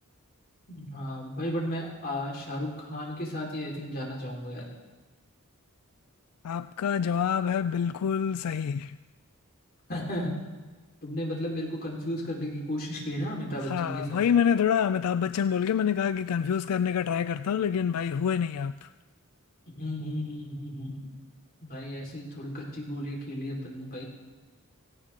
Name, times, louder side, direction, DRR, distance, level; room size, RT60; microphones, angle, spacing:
voice 1, 0.7-4.7 9.9-10.3 11.0-14.2 19.7-21.1 21.6-24.0, equal, 45° left, 4.3 m, -34 dB
voice 2, 6.4-9.0 13.6-18.9, left 7 dB, 85° left, 0.4 m, -27 dB
18.0 x 17.0 x 3.7 m
head